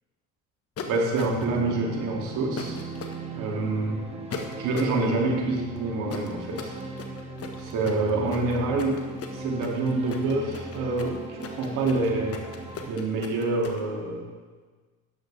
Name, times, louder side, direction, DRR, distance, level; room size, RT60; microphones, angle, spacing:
sound 1, 0.8-1.6 2.6-3.1 4.3-5.0 6.1-13.8, left 5 dB, 45° left, 1.4 m, -38 dB
voice 1, 0.9-2.8 3.4-4.0 4.6-6.8 7.6-12.4 12.9-14.3, right 3 dB, 70° right, -1 dB, 2.6 m, -27 dB
sound 2, 1.2-12.9, right 2 dB, 20° right, 1.6 m, -39 dB
12.5 x 10.0 x 3.4 m, 1.4 s
supercardioid pair, 85°, 33 cm